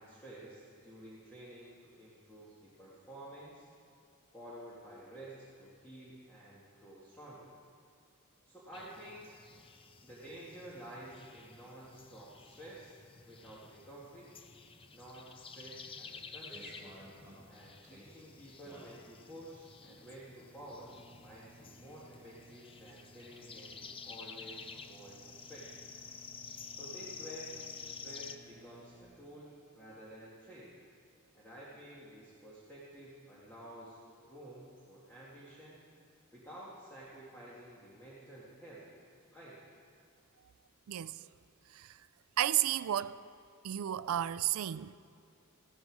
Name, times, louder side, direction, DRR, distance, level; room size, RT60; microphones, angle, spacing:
voice 1, 0.0-3.7 4.3-7.5 8.5-9.3 10.0-13.0 13.2-14.3 14.9-16.7 17.5-25.8 26.7-27.5 27.8-30.7 31.3-35.8 36.3-38.8 39.3-39.6, right 1 dB, 10° left, 2.0 m, -51 dB
sound 1, 8.7-28.4, left 5 dB, 25° left, 0.5 m, -51 dB
sound 2, 16.0-29.0, right 1 dB, 10° right, 4.3 m, -58 dB
voice 2, 40.9-41.3 41.7-42.1 42.4-43.3 43.6-45.0, right 12 dB, 70° right, 0.4 m, -33 dB
15.0 x 13.5 x 4.7 m
head